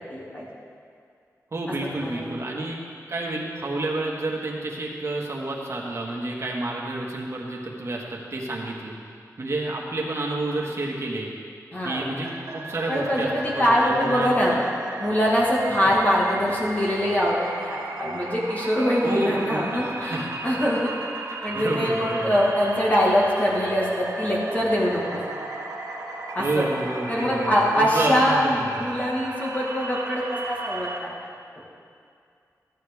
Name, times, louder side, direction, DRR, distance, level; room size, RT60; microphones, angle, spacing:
voice 1, 0.1-0.4 1.9-2.4 11.7-12.1 12.9-14.5 15.0-20.9 21.4-25.2 26.3-26.7 27.1-31.1, equal, 25° left, -5 dB, 1.7 m, -23 dB
voice 2, 1.5-2.8 3.1-8.9 9.4-11.3 11.8-14.6 15.7-15.9 19.0-20.2 21.3-22.3 26.4-28.9, right 2 dB, 45° right, -2 dB, 1.7 m, -29 dB
sound 1, 12.2-31.0, right 2 dB, 90° right, 1.3 m, -35 dB
14.0 x 9.7 x 3.5 m, 2.3 s
wide cardioid pair, 110°, 6 cm